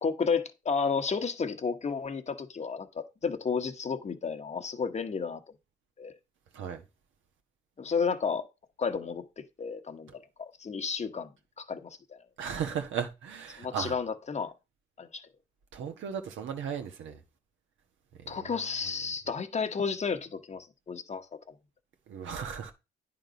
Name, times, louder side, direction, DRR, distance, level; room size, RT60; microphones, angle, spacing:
voice 1, 0.0-5.4 6.0-6.2 7.8-8.5 8.8-11.3 11.6-12.2 13.6-14.5 15.0-15.2 18.3-21.6, left 5 dB, 35° left, 1.1 m, -32 dB
voice 2, 12.4-13.9 15.7-17.2 18.2-18.5 22.1-22.7, right 7 dB, 75° right, 1.4 m, -36 dB
9.5 x 3.8 x 5.2 m
cardioid pair, 90°, 20 cm